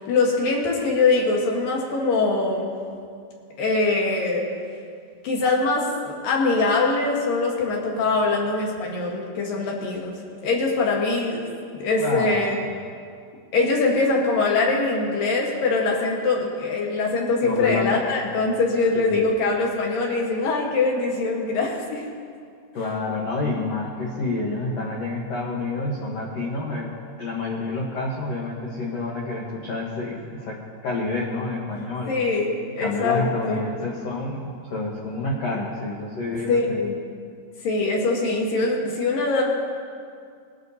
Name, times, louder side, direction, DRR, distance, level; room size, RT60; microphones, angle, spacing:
voice 1, 0.1-2.7 3.6-4.5 5.2-10.1 10.4-12.6 13.5-22.0 32.1-33.2 33.5-33.6 36.5-36.9 37.6-39.4, left 3 dB, 65° left, -1 dB, 2.7 m, -23 dB
voice 2, 12.0-12.7 17.4-18.0 18.9-19.3 22.7-32.1 32.8-36.8, left 2 dB, 90° left, -3 dB, 1.4 m, -28 dB
20.5 x 11.5 x 2.7 m, 2.2 s
omnidirectional pair, 4.9 m